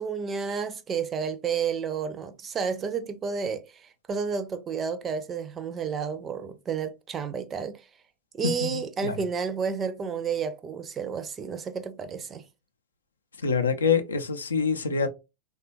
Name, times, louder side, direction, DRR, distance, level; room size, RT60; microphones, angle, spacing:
voice 1, 0.0-7.9 8.3-12.5, right 6 dB, 25° right, 0.4 m, -31 dB
voice 2, 8.4-9.2 13.4-15.1, left 5 dB, 75° left, 0.4 m, -26 dB
3.2 x 2.3 x 3.0 m
figure-of-eight pair, 90°, 0 cm